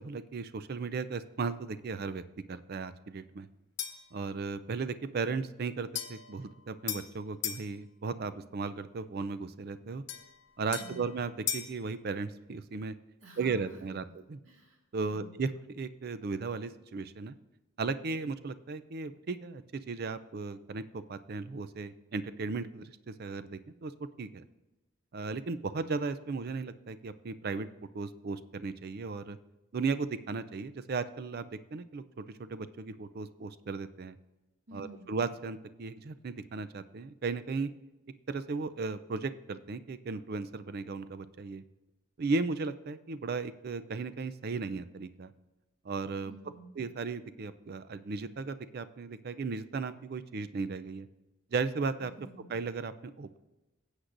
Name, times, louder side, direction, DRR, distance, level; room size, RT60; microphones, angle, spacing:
voice 1, 0.0-2.2 2.5-3.5 4.1-10.0 10.6-12.9 13.4-14.4 14.9-17.4 17.8-24.4 25.1-27.7 27.9-29.4 29.7-34.2 34.7-37.7 38.3-41.6 42.2-45.3 45.8-46.4 46.8-51.1 51.5-52.1 52.5-53.4, right 4 dB, 45° right, 14 dB, 0.4 m, -36 dB
sound 1, 3.8-4.1 6.0-7.7 10.1-11.8, left 9 dB, 55° left, 0.9 m, -38 dB
voice 2, 10.8-11.1 13.2-14.2 14.4-14.8 15.0-15.4 34.7-35.1 46.3-46.8 52.0-52.5, right 2 dB, 75° right, -1 dB, 2.0 m, -51 dB
16.0 x 8.0 x 2.6 m, 1.1 s
head